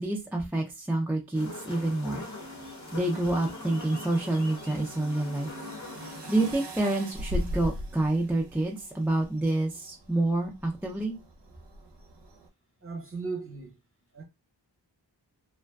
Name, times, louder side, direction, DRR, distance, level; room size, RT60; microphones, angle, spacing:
voice 1, 0.0-2.2 2.9-5.5 6.0-11.2, right 2 dB, 5° right, 0.4 m, -28 dB
sound 1, 1.3-6.5, left 3 dB, 40° left, 0.6 m, -42 dB
sound 2, 2.3-12.5, equal, 65° right, 0.6 m, -41 dB
voice 2, 12.8-13.8 14.1-14.2, right 4 dB, 30° right, 0.8 m, -36 dB
2.5 x 2.2 x 2.2 m
wide cardioid pair, 65°, 45 cm